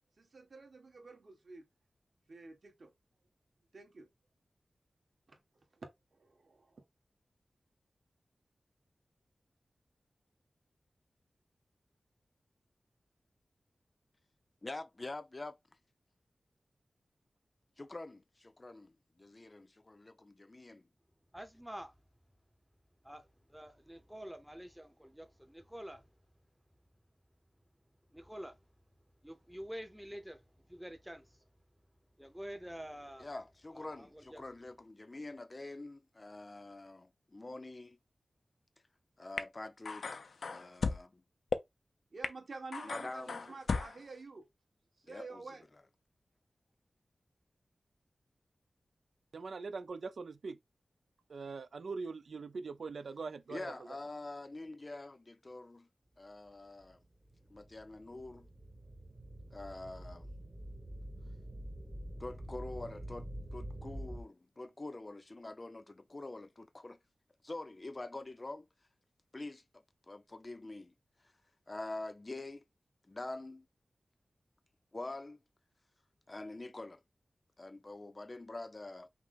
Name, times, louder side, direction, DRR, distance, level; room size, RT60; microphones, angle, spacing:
voice 1, 0.2-1.7 2.3-2.9 3.7-4.1 5.3-5.4 5.8-6.8 42.1-44.5 45.0-45.6, right 3 dB, 60° right, 1.6 m, -49 dB
voice 2, 14.6-15.5 17.8-20.8 33.2-38.0 39.2-41.2 42.8-43.4 45.1-45.4 53.5-55.9 56.2-57.0 57.5-58.5 59.5-60.3 62.2-67.0 67.4-68.7 69.3-69.6 70.1-70.9 71.7-72.6 73.1-73.7 74.9-75.4 76.3-77.0 77.6-79.1, left 2 dB, 30° left, 0.5 m, -45 dB
voice 3, 21.3-21.9 23.0-23.2 23.5-26.0 28.1-28.5 29.2-30.4 30.7-31.2 32.2-33.3 33.8-34.4, equal, 5° right, 0.7 m, -47 dB
sound 1, 39.4-39.5 39.9-41.0 41.5-41.6 42.2-42.3 42.7-44.0, left 4 dB, 85° left, 0.5 m, -35 dB
voice 4, 49.3-50.6 51.3-53.7, right 4 dB, 85° right, 0.5 m, -42 dB
sound 2, 57.2-64.2, right 1 dB, 35° right, 1.2 m, -46 dB
5.8 x 2.1 x 3.9 m
wide cardioid pair, 110°, 0 cm